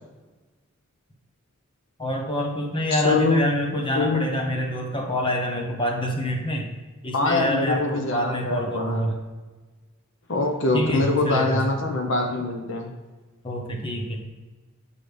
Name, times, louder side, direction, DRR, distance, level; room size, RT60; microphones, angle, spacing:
voice 1, 2.0-6.7 7.0-9.2 10.7-11.6 13.4-14.2, equal, 25° left, 1 dB, 1.1 m, -26 dB
voice 2, 2.9-3.4 3.9-4.4 7.1-9.0 10.3-12.9, left 2 dB, 60° left, 3 dB, 0.9 m, -24 dB
7.3 x 6.3 x 3.4 m, 1.3 s
head